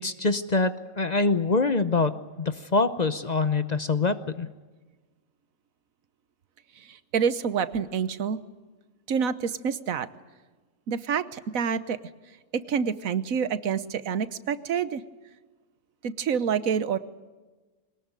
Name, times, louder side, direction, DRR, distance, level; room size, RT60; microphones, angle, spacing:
voice 1, 0.0-4.5, left 3 dB, 35° left, 12 dB, 0.8 m, -25 dB
voice 2, 6.8-8.4 9.1-10.1 10.9-12.0 12.5-15.0 16.0-17.0, right 7 dB, 85° right, 14 dB, 1.4 m, -27 dB
22.0 x 19.5 x 9.0 m, 1.3 s
omnidirectional pair, 1.4 m